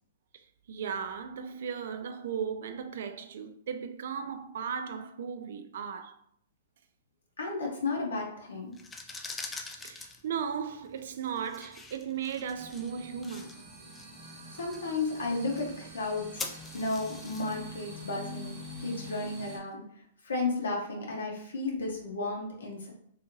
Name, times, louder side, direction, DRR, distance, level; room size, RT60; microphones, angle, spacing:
voice 1, 0.7-6.2 9.7-13.6, right 7 dB, 65° right, 0.3 m, -36 dB
voice 2, 7.4-8.7 14.5-22.9, left 3 dB, 80° left, 0.6 m, -33 dB
sound 1, 8.7-19.5, left 3 dB, 15° left, 0.3 m, -46 dB
sound 2, 12.5-19.6, equal, 35° right, 0.8 m, -45 dB
2.6 x 2.4 x 2.9 m
hypercardioid pair, 120°, 0 cm